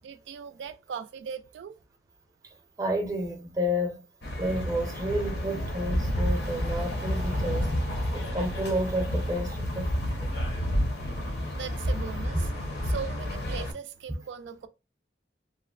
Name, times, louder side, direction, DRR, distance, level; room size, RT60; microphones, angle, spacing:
voice 1, 0.0-1.7 11.5-12.5 12.8-14.7, right 7 dB, 90° right, 0.3 m, -39 dB
voice 2, 2.8-4.0 4.4-7.7 8.1-9.9 10.2-10.3, equal, 20° right, 0.6 m, -30 dB
sound 1, 4.2-13.7, equal, 60° left, 0.7 m, -30 dB
2.9 x 2.0 x 2.3 m
head